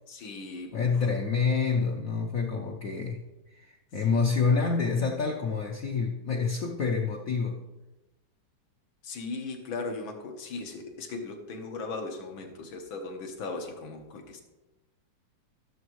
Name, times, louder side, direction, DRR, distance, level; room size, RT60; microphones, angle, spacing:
voice 1, 0.1-1.0 4.1-4.3 4.6-4.7 9.0-14.4, left 3 dB, 80° left, 3 dB, 2.0 m, -38 dB
voice 2, 0.7-3.2 3.5-7.6, left 5 dB, 55° left, -1 dB, 1.0 m, -27 dB
14.5 x 7.2 x 3.1 m, 1.1 s
omnidirectional pair, 2.1 m